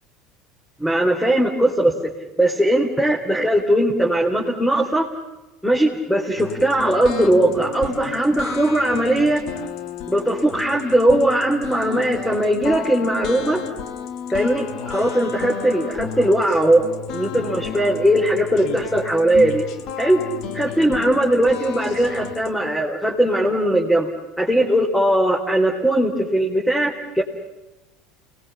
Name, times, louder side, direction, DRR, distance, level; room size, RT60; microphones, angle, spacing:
voice 1, 0.8-2.1 2.4-5.1 5.6-9.4 10.1-13.6 14.3-16.8 17.1-19.6 20.0-20.2 20.5-24.1 24.4-27.2, right 1 dB, 5° left, -1 dB, 4.1 m, -19 dB
sound 1, 6.4-22.5, left 8 dB, 60° left, 2.2 m, -33 dB
29.5 x 20.5 x 7.1 m, 1.0 s
hypercardioid pair, 80°, 0 cm